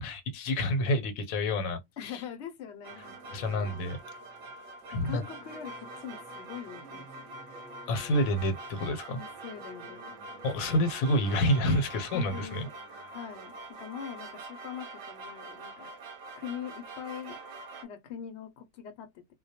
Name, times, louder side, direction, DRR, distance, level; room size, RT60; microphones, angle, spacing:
voice 1, 0.0-2.2 3.3-4.0 4.9-5.2 7.9-9.2 10.4-12.7, left 1 dB, 85° left, 1.0 m, -28 dB
voice 2, 2.0-3.8 4.9-7.3 9.1-10.1 12.1-12.7 13.1-15.9 16.4-17.4 17.8-19.3, left 8 dB, 65° left, 0.7 m, -43 dB
sound 1, 2.8-17.8, right 2 dB, 60° right, 0.8 m, -45 dB
Singing / Musical instrument, 2.9-14.7, right 2 dB, 10° left, 0.4 m, -54 dB
2.1 x 2.1 x 2.7 m
omnidirectional pair, 1.4 m